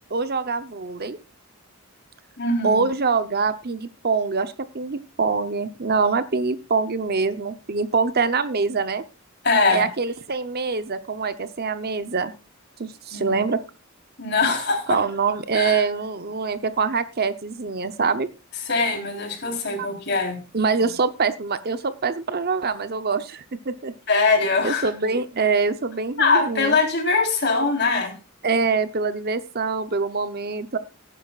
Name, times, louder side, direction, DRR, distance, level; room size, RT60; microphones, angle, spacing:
voice 1, 0.1-1.2 2.6-9.0 9.7-12.3 12.8-13.6 14.9-18.3 19.8-19.9 20.5-23.9 24.6-26.8 28.4-30.8, right 4 dB, 50° right, 11 dB, 0.8 m, -24 dB
voice 2, 2.4-2.8 9.4-9.9 13.1-13.4 14.2-15.0 15.5-15.8 18.6-20.4 24.1-24.9 26.2-28.2, left 3 dB, 55° left, 3 dB, 3.7 m, -22 dB
18.0 x 10.0 x 2.4 m, 0.27 s
head